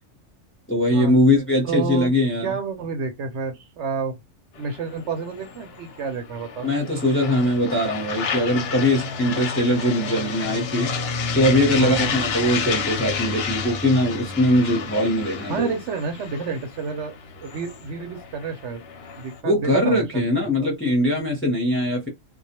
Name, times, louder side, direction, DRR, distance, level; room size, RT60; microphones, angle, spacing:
voice 1, 0.7-2.5 6.6-11.0 11.3-15.7 19.4-22.1, left 1 dB, 15° left, 0.6 m, -21 dB
voice 2, 1.6-2.1 2.4-4.2 4.6-6.7 11.8-12.2 15.5-18.8 19.2-20.2 20.6-20.7, right 5 dB, 70° right, 0.9 m, -29 dB
sound 1, 4.6-19.4, left 5 dB, 60° left, 0.7 m, -31 dB
2.3 x 2.1 x 2.8 m
omnidirectional pair, 1.3 m